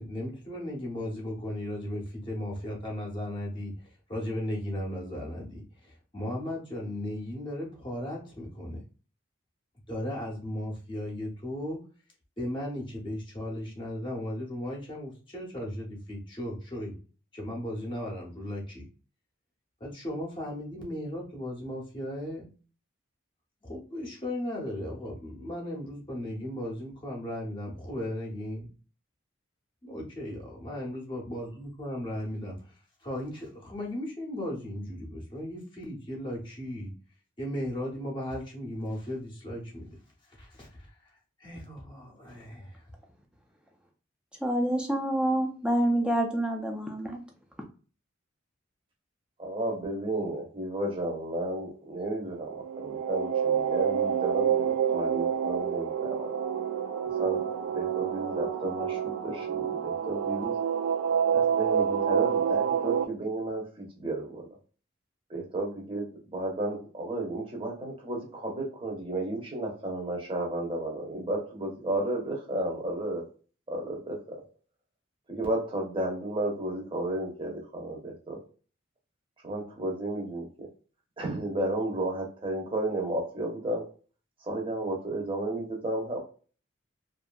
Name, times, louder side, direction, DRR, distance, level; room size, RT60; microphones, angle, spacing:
voice 1, 0.0-8.8 9.9-11.8 12.4-16.9 17.3-18.8 19.8-22.5 23.6-28.7 29.8-32.7 33.0-36.9 37.4-40.0 40.3-42.9, left 1 dB, 25° left, -2 dB, 0.7 m, -36 dB
voice 2, 44.4-47.2, right 1 dB, 5° right, 2 dB, 0.3 m, -27 dB
voice 3, 49.4-56.3 57.2-60.6 61.3-64.5 65.3-73.3 73.7-74.4 75.3-78.4 79.4-80.7 81.2-83.9 84.4-86.2, right 1 dB, 25° right, 0 dB, 0.7 m, -33 dB
sound 1, 52.4-63.0, right 8 dB, 85° right, 0.3 m, -28 dB
2.6 x 2.4 x 2.2 m, 0.38 s
head